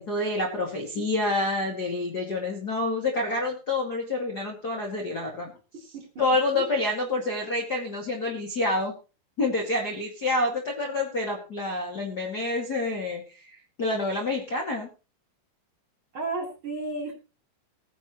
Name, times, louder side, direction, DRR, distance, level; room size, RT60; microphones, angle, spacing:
voice 1, 0.0-5.5 6.2-8.9 9.4-13.5 13.8-14.9, left 2 dB, 35° left, 1 dB, 1.8 m, -28 dB
voice 2, 16.1-17.1, right 3 dB, 30° right, -2 dB, 3.9 m, -32 dB
19.5 x 10.0 x 3.1 m, 0.33 s
omnidirectional pair, 5.0 m